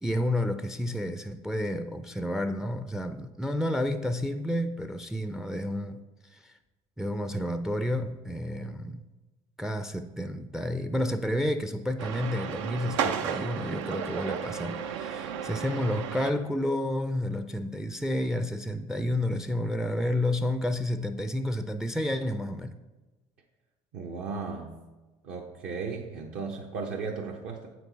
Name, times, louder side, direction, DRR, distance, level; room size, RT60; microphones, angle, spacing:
voice 1, 0.0-6.0 6.3-6.5 7.0-9.0 9.6-22.8, left 1 dB, 5° right, 9 dB, 0.4 m, -30 dB
sound 1, 12.0-16.3, right 7 dB, 85° right, 0.5 m, -33 dB
voice 2, 23.9-24.7 25.2-27.7, right 4 dB, 65° right, -1 dB, 0.8 m, -35 dB
7.9 x 4.6 x 3.9 m, 1.2 s
supercardioid pair, 80°, 16 cm